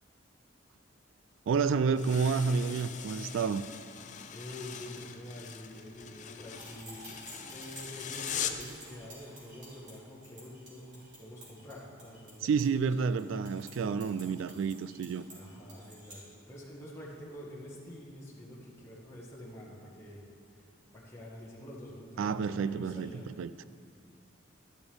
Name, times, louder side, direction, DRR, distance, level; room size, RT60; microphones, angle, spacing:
voice 1, 1.5-3.6 12.4-15.2 22.2-23.1 23.4-23.5, right 5 dB, 75° right, 14 dB, 0.3 m, -29 dB
sound 1, 2.0-8.7, left 8 dB, 35° left, 0.5 m, -41 dB
voice 2, 4.3-12.7 13.8-14.0 15.3-20.2 20.5-23.2, left 1 dB, 15° left, -7 dB, 1.5 m, -47 dB
sound 2, 6.4-16.2, right 1 dB, 35° right, 2.9 m, -51 dB
12.0 x 11.0 x 3.5 m, 2.2 s
head